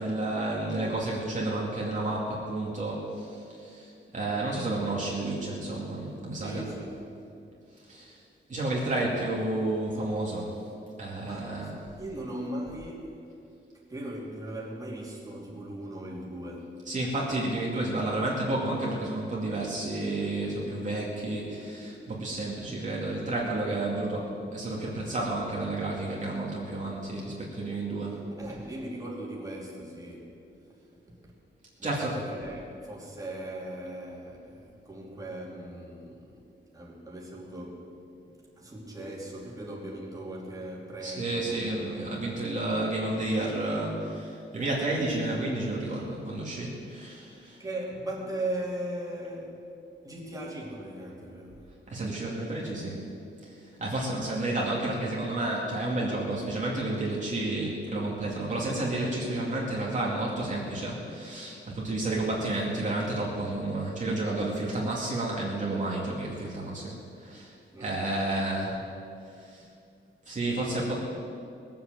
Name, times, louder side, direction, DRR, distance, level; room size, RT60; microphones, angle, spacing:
voice 1, 0.0-6.6 7.9-8.2 8.5-10.6 11.0-11.7 16.9-28.2 31.8-32.1 41.0-47.6 51.9-53.0 53.4-53.5 53.8-67.5 67.8-68.8 69.4-69.6 70.3-71.1, right 2 dB, 40° right, -5 dB, 2.5 m, -31 dB
voice 2, 6.4-7.1 8.8-9.2 11.3-11.6 12.0-13.2 13.9-16.9 28.4-30.4 31.2-31.3 31.8-36.4 36.7-38.0 38.6-42.1 47.6-49.6 50.0-51.8 67.7-68.5, right 1 dB, 15° right, -4 dB, 2.9 m, -39 dB
20.0 x 7.9 x 7.7 m, 2.6 s
wide cardioid pair, 150°, 20 cm